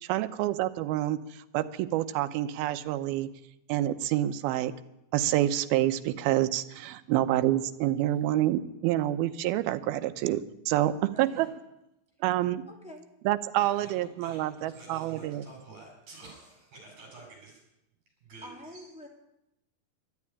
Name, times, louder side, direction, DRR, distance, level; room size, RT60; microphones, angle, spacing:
voice 1, 0.0-3.3 3.7-4.7 5.1-11.5 12.2-12.6 13.3-15.4, right 13 dB, 90° right, 12 dB, 2.7 m, -28 dB
voice 2, 11.1-11.4 12.7-13.1 18.4-19.1, left 1 dB, ahead, 0 dB, 1.9 m, -46 dB
voice 3, 13.6-17.6 18.2-18.8, right 3 dB, 55° right, 1 dB, 7.2 m, -49 dB
12.0 x 12.0 x 9.8 m, 0.86 s
omnidirectional pair, 4.3 m